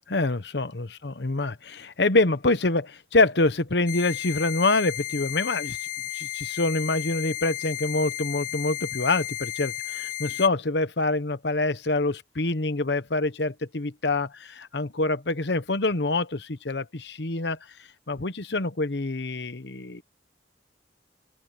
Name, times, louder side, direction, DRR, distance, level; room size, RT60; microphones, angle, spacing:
voice 1, 0.1-5.8 6.1-17.6 18.1-20.0, left 2 dB, 65° left, 1.0 m, -26 dB
sound 1, 3.9-10.5, left 13 dB, 45° left, 4.3 m, -33 dB
open air
head